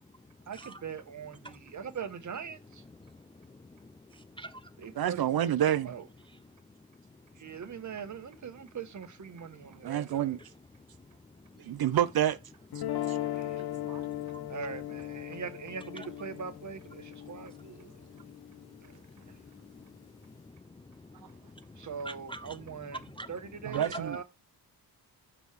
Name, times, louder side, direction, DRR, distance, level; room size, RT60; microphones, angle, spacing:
voice 1, 0.5-2.6 4.8-5.5 5.9-6.0 7.4-10.3 14.5-17.8 21.8-23.0 23.3-24.2, right 6 dB, 45° right, 1.1 m, -41 dB
voice 2, 2.7-3.1 3.4-4.7 7.7-7.8 13.7-14.6 16.0-16.4 17.0-18.4 19.2-19.4 19.7-19.9 20.2-23.4 23.7-24.0, right 1 dB, 15° left, 0.3 m, -47 dB
voice 3, 5.0-5.9 9.8-10.4 11.6-12.4 13.1-13.2 13.9-14.1 23.6-24.2, right 11 dB, 65° right, 0.6 m, -28 dB
sound 1, 12.7-18.8, left 13 dB, 70° left, 0.8 m, -38 dB
6.5 x 6.1 x 3.5 m
wide cardioid pair, 145°, 40 cm